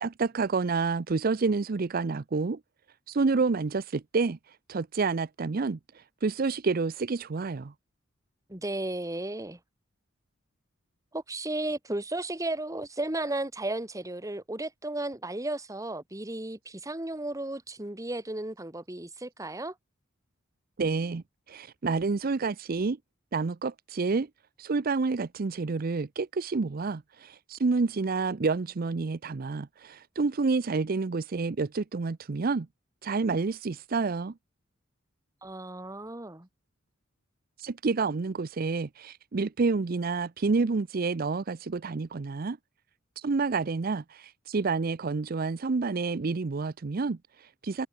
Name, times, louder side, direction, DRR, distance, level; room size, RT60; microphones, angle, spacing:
voice 1, 0.0-2.6 3.1-7.7 20.8-23.0 23.3-24.3 24.6-32.7 33.0-34.3 37.6-42.6 43.2-47.9, right 4 dB, 45° right, 0.5 m, -29 dB
voice 2, 8.5-9.6 11.1-19.7 35.4-36.5, right 2 dB, 15° right, 1.4 m, -34 dB
head